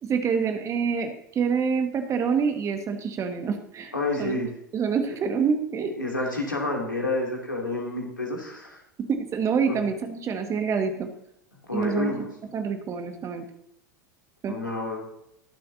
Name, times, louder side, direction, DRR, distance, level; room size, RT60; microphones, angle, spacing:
voice 1, 0.0-3.9 4.2-4.3 4.7-5.9 9.1-11.1 11.7-12.1 12.5-13.4 14.4-14.6, right 6 dB, 30° right, 6 dB, 1.7 m, -26 dB
voice 2, 3.9-4.5 6.0-8.8 9.7-9.8 11.7-12.3 14.5-15.0, left 2 dB, 85° left, -1 dB, 2.8 m, -29 dB
21.5 x 7.6 x 2.8 m, 0.79 s
figure-of-eight pair, 80°, 10 cm